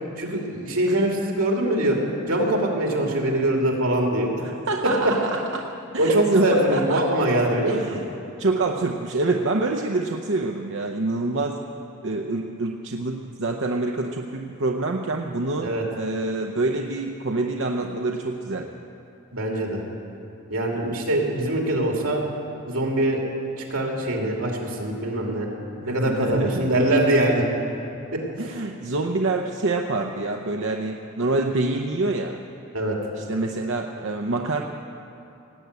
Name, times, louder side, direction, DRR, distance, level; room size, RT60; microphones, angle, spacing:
voice 1, 0.2-2.0 2.3-4.3 6.0-7.8 15.6-15.8 19.3-19.8 20.5-22.2 22.7-23.2 23.7-25.5 25.8-27.4 28.1-28.2 32.7-33.0, right 1 dB, 85° right, 0 dB, 2.7 m, -23 dB
voice 2, 4.4-5.7 5.9-7.1 7.7-8.1 8.4-11.6 12.0-18.7 20.7-21.0 25.8-26.7 28.4-32.4 33.2-34.6, right 2 dB, 60° right, 2 dB, 0.7 m, -26 dB
18.0 x 9.1 x 8.2 m, 2.9 s
head